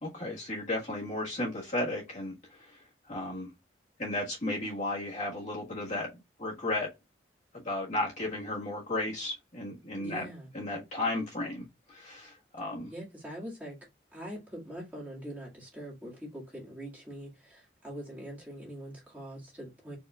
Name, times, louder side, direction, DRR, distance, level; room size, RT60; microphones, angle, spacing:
voice 1, 0.0-2.8 3.0-3.5 4.0-6.9 7.5-10.3 10.5-12.9, left 2 dB, 40° left, 1.5 m, -34 dB
voice 2, 10.0-10.5 12.9-13.8 14.1-20.0, right 1 dB, 10° right, 1.8 m, -43 dB
4.7 x 3.5 x 2.4 m
head